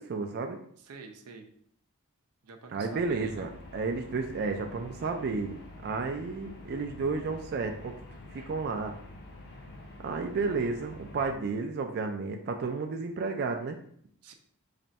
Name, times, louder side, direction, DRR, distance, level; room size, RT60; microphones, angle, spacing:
voice 1, 0.0-0.6 2.7-7.9 8.3-8.9 10.0-13.8, right 4 dB, 45° right, 4 dB, 0.4 m, -32 dB
voice 2, 0.8-1.5 2.4-3.5 14.2-14.3, right 4 dB, 90° right, 5 dB, 0.6 m, -47 dB
sound 1, 2.9-11.3, left 2 dB, 50° left, 0.6 m, -47 dB
3.3 x 2.6 x 4.0 m, 0.63 s
head